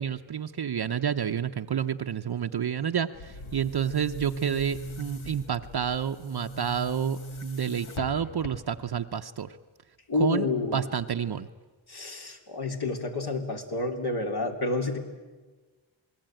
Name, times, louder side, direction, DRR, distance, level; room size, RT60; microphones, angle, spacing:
voice 1, 0.0-9.5 10.2-10.5 10.7-11.5, right 8 dB, 55° right, 6 dB, 0.8 m, -29 dB
Boom, 3.1-9.0, equal, 85° left, 1.8 m, -40 dB
voice 2, 10.1-10.9 11.9-15.0, left 2 dB, 55° left, 4 dB, 3.4 m, -29 dB
28.0 x 20.0 x 9.1 m, 1.3 s
wide cardioid pair, 85°, 47 cm